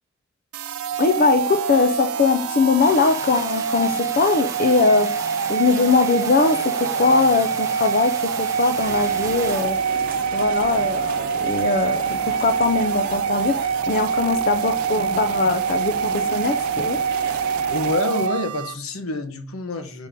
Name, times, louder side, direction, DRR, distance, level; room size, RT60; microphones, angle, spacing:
sound 1, 0.5-18.7, right 7 dB, 85° right, 0.4 m, -25 dB
voice 1, 1.0-5.1 5.5-9.8 10.3-17.0, left 4 dB, 40° left, 0.4 m, -21 dB
sound 2, 2.8-9.6, right 3 dB, 15° right, 0.5 m, -37 dB
sound 3, 8.8-18.0, right 3 dB, 40° right, 0.8 m, -37 dB
voice 2, 17.7-20.1, left 2 dB, 80° left, 1.0 m, -27 dB
5.2 x 3.7 x 5.3 m
head